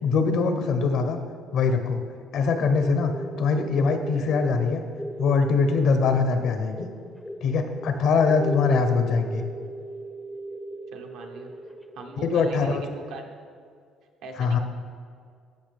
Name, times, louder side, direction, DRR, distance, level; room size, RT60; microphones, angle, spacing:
voice 1, 0.0-1.2 1.5-2.0 2.3-3.1 3.4-4.8 5.2-6.9 7.4-9.4 12.2-12.8 14.4-14.6, left 4 dB, 65° left, 7 dB, 0.9 m, -22 dB
sound 1, 2.7-12.6, right 1 dB, 5° left, 0.5 m, -37 dB
voice 2, 10.9-11.5 11.9-13.3 14.2-14.6, right 4 dB, 80° right, 3 dB, 1.1 m, -40 dB
13.5 x 5.8 x 3.5 m, 2.2 s
cardioid pair, 130°, 0 cm